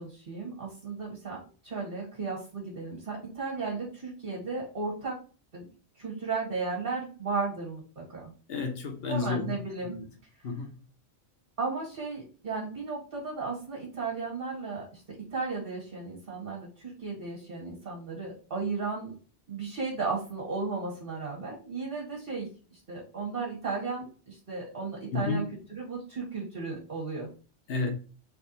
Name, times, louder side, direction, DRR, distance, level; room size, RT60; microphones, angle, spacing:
voice 1, 0.0-5.2 5.5-5.7 5.9-8.3 9.1-9.9 11.6-19.1 19.5-27.3, right 4 dB, 50° right, 1.5 m, -35 dB
voice 2, 8.5-9.6 9.8-10.1 10.4-10.8 25.1-25.4 27.7-27.9, left 4 dB, 65° left, 1.0 m, -31 dB
3.3 x 2.3 x 4.1 m
omnidirectional pair, 1.1 m